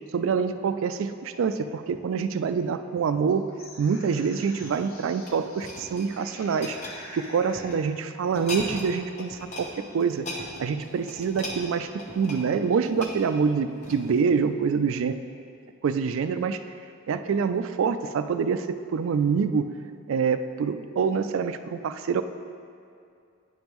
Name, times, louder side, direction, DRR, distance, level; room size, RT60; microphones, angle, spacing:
voice 1, 0.1-3.5 3.8-6.8 7.1-10.3 10.6-11.9 12.2-15.2 15.8-16.6 17.1-19.7 20.1-22.2, right 6 dB, 65° right, 11 dB, 0.3 m, -26 dB
sound 1, 3.3-5.8 6.1-7.9, left 1 dB, 70° left, 1.2 m, -46 dB
sound 2, 4.6-7.8 8.2-8.9 9.2-9.7 10.0-14.3 14.8-15.0, left 1 dB, 35° left, 0.9 m, -39 dB
9.6 x 5.3 x 3.0 m, 2.4 s
head